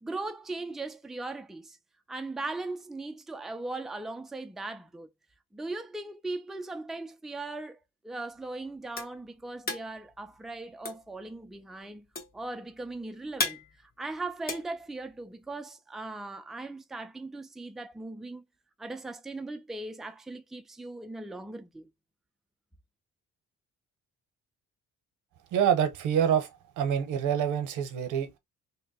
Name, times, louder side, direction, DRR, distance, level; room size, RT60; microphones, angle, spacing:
voice 1, 0.0-1.8 2.1-5.1 5.5-12.1 12.3-18.4 18.8-21.9, right 2 dB, ahead, 0.4 m, -39 dB
sound 1, 8.3-15.5, left 2 dB, 30° left, 1.2 m, -37 dB
voice 2, 25.5-26.5 26.8-28.4, right 8 dB, 85° right, 0.8 m, -26 dB
2.9 x 2.2 x 4.0 m
cardioid pair, 90°, 30 cm